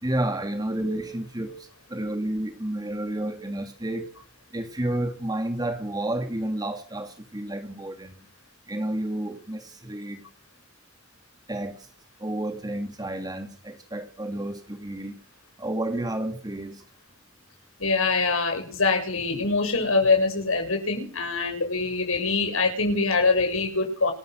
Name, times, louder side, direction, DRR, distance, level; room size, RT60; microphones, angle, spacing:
voice 1, 0.0-4.1 4.5-8.3 8.7-10.2 11.5-11.9 12.2-15.2 15.6-16.8, right 1 dB, 20° right, 2.6 m, -31 dB
voice 2, 17.8-24.1, left 3 dB, 80° left, 7.5 m, -24 dB
27.5 x 14.5 x 6.5 m
head